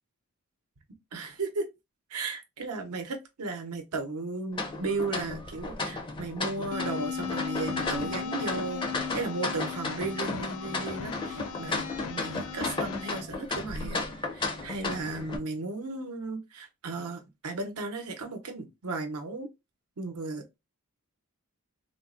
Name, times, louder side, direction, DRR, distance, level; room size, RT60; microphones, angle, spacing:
voice 1, 1.1-1.7 2.1-8.8 9.1-14.1 14.3-19.5 20.0-20.4, right 3 dB, 85° right, 0.7 m, -35 dB
sound 1, 4.5-15.4, left 3 dB, 20° left, 0.4 m, -34 dB
sound 2, 6.7-13.2, left 6 dB, 90° left, 0.5 m, -37 dB
3.5 x 2.0 x 2.4 m
head